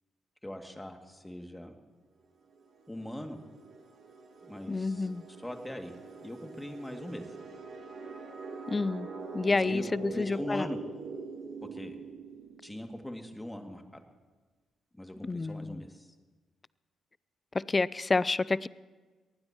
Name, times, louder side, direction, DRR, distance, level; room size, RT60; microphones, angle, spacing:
voice 1, 0.4-1.7 2.9-3.4 4.4-5.1 5.4-5.9 6.2-7.2 9.4-9.8 10.1-10.8 11.7-12.0 12.6-14.0 14.9-16.1, left 1 dB, 10° left, 4 dB, 2.4 m, -41 dB
sound 1, 2.5-13.0, right 4 dB, 60° right, 3.4 m, -44 dB
voice 2, 4.7-5.2 8.7-9.1 9.3-10.7 15.3-15.9 17.5-18.7, left 3 dB, 30° left, 20 dB, 0.5 m, -29 dB
25.0 x 19.0 x 3.0 m, 1.3 s
hypercardioid pair, 45°, 0 cm